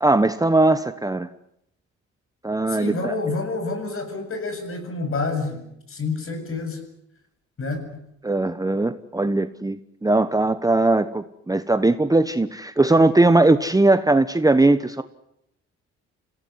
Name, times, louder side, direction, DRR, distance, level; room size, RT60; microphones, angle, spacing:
voice 1, 0.0-1.3 2.4-3.1 8.2-9.8 10.0-15.0, right 2 dB, 10° right, 11 dB, 1.1 m, -19 dB
voice 2, 2.7-6.8 7.6-8.1, left 3 dB, 45° left, 7 dB, 7.7 m, -28 dB
26.5 x 17.0 x 9.6 m, 0.79 s
cardioid pair, 90°, 30 cm